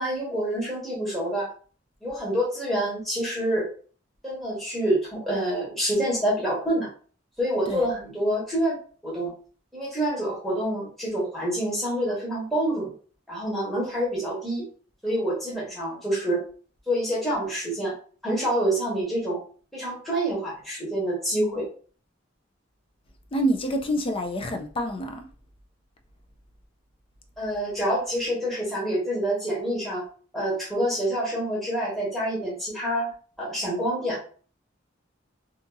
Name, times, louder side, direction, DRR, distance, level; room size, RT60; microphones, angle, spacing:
voice 1, 0.0-1.5 2.0-3.7 4.2-6.9 7.4-8.8 9.0-9.3 9.7-12.9 13.3-14.6 15.0-16.4 16.9-17.9 18.2-19.4 19.7-21.6 27.4-30.0 30.3-33.1 33.4-34.2, right 1 dB, ahead, 1.2 m, -27 dB
voice 2, 23.3-25.2, equal, 30° left, 0.4 m, -27 dB
2.8 x 2.6 x 2.3 m
head